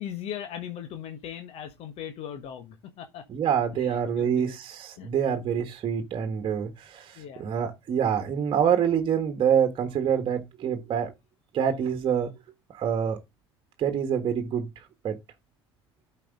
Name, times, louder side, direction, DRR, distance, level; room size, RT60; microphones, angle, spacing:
voice 1, 0.0-3.2 3.8-4.5 5.0-5.1 7.1-7.4, left 9 dB, 45° left, 1.4 m, -39 dB
voice 2, 3.3-11.1 11.5-12.3 12.7-13.2 13.8-15.2, right 8 dB, 35° right, 1.4 m, -26 dB
12.5 x 4.8 x 3.7 m
figure-of-eight pair, 60°, 14 cm